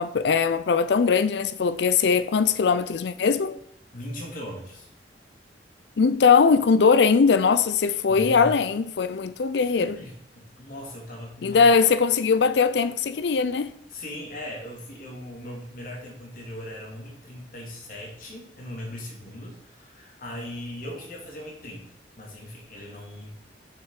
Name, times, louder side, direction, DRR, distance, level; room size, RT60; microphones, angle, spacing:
voice 1, 0.0-3.6 6.0-9.9 11.4-13.7, left 5 dB, 70° left, 0.4 m, -20 dB
voice 2, 3.9-4.9 8.1-8.6 9.0-9.1 9.8-11.7 13.9-23.3, left 1 dB, 50° left, 2.6 m, -39 dB
6.8 x 6.6 x 4.8 m
head